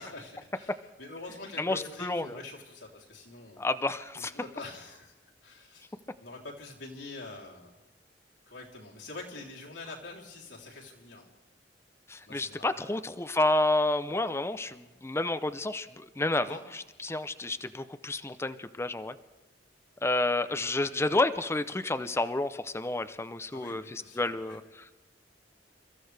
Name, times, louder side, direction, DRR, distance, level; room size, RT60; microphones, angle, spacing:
voice 1, 0.0-3.6 4.1-5.1 5.4-5.9 6.2-7.7 8.5-11.3 12.2-13.0 16.5-16.6 23.5-24.6, left 2 dB, 85° left, -3 dB, 3.3 m, -45 dB
voice 2, 1.6-2.4 3.6-4.3 12.1-19.1 20.0-24.6, left 2 dB, 15° left, 12 dB, 0.5 m, -30 dB
29.0 x 14.5 x 3.3 m, 1.1 s
head